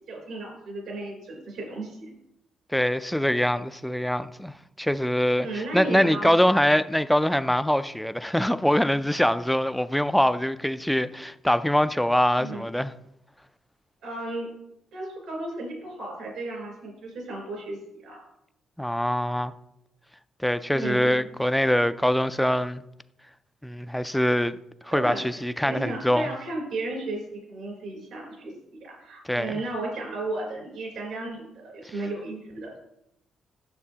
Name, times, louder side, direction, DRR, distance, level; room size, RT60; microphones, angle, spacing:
voice 1, 0.1-2.0 5.4-6.4 12.4-12.7 14.0-14.5 14.9-18.2 20.7-21.1 24.9-32.8, right 2 dB, 80° right, 3.3 m, -34 dB
voice 2, 2.7-12.9 18.8-19.5 20.4-22.8 23.6-24.5 24.8-26.3 29.3-29.5, equal, 5° left, 0.3 m, -24 dB
9.6 x 6.6 x 2.8 m
cardioid pair, 90°, 0 cm